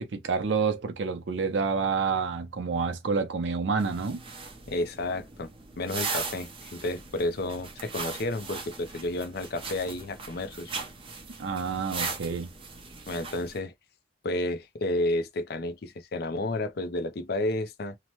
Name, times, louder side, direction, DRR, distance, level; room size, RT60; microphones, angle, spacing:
voice 1, 0.0-4.2 11.4-12.5, right 5 dB, 80° right, 0.6 m, -28 dB
sound 1, 3.8-13.6, right 4 dB, 30° right, 0.7 m, -39 dB
voice 2, 4.7-5.5 5.8-10.7 13.1-13.7 14.2-18.0, left 2 dB, 55° left, 0.5 m, -31 dB
2.8 x 2.1 x 2.9 m
head